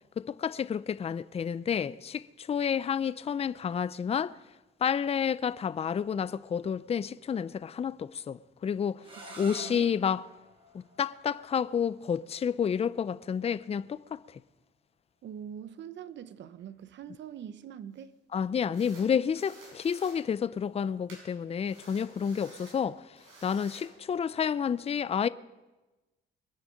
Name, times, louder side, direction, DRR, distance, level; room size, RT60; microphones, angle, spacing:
voice 1, 0.2-4.4 4.8-9.0 9.4-10.2 10.7-14.4 18.3-25.3, left 7 dB, 30° left, 0.5 m, -30 dB
sound 1, 9.0-14.7, right 1 dB, 25° right, 3.6 m, -51 dB
voice 2, 9.6-9.9 15.2-18.2, right 9 dB, 65° right, 0.9 m, -43 dB
sound 2, 16.6-16.9 18.0-18.1 18.7-19.1 19.4-20.2 21.1-21.2 21.6-22.8 23.2-23.9, right 2 dB, 85° right, 6.0 m, -52 dB
22.5 x 8.8 x 6.4 m
cardioid pair, 90°, 20 cm